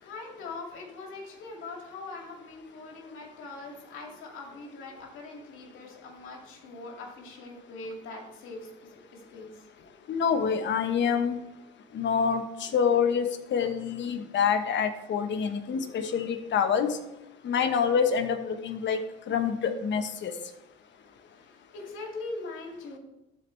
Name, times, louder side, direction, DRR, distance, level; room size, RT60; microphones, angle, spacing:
voice 1, 0.0-8.7 9.3-9.5 21.7-23.0, left 3 dB, 85° left, -1 dB, 2.5 m, -41 dB
voice 2, 10.1-11.4 11.9-17.0 17.4-19.0 19.3-20.3, left 6 dB, 65° left, 7 dB, 1.1 m, -26 dB
13.0 x 4.7 x 3.3 m, 0.96 s
cardioid pair, 90°, 20 cm